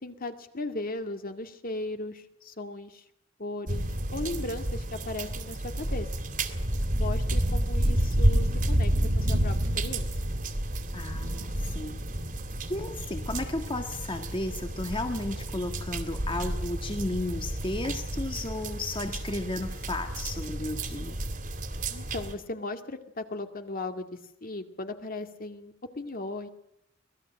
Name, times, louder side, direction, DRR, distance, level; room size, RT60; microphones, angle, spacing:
voice 1, 0.0-3.0 3.4-3.9 4.1-6.1 7.0-10.1 21.9-26.5, left 2 dB, 45° left, 7 dB, 2.2 m, -37 dB
sound 1, 3.7-22.3, right 1 dB, 45° right, 2.5 m, -30 dB
voice 2, 10.9-12.0 12.7-21.2, left 2 dB, 25° left, 6 dB, 1.7 m, -34 dB
25.5 x 19.0 x 7.5 m, 0.80 s
head